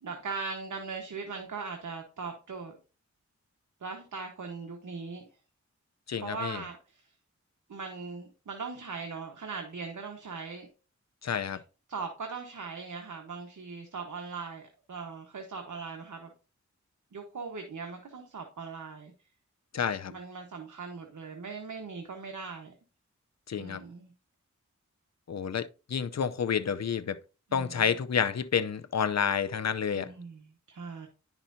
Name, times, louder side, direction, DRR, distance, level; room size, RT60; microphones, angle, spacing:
voice 1, 0.0-2.7 3.8-5.2 6.1-7.0 7.7-10.7 11.9-16.3 17.1-19.1 20.1-22.7 23.6-24.1 27.5-27.8 29.9-31.1, right 4 dB, 85° right, 1.2 m, -40 dB
voice 2, 6.1-6.6 11.2-11.6 19.7-20.1 23.5-23.8 25.3-27.2 27.5-30.1, left 7 dB, 60° left, 0.6 m, -29 dB
10.0 x 5.8 x 2.7 m
wide cardioid pair, 55°, 30 cm